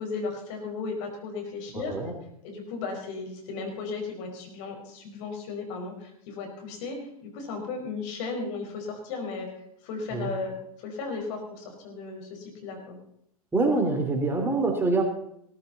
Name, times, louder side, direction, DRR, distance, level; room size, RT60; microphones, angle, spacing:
voice 1, 0.0-1.9 2.4-9.5 9.8-13.0, left 4 dB, 50° left, 2 dB, 5.1 m, -35 dB
voice 2, 1.7-2.1 10.1-10.3 13.5-15.0, right 3 dB, 10° right, 2 dB, 3.1 m, -25 dB
17.0 x 14.5 x 4.1 m, 0.72 s
figure-of-eight pair, 95°, 19 cm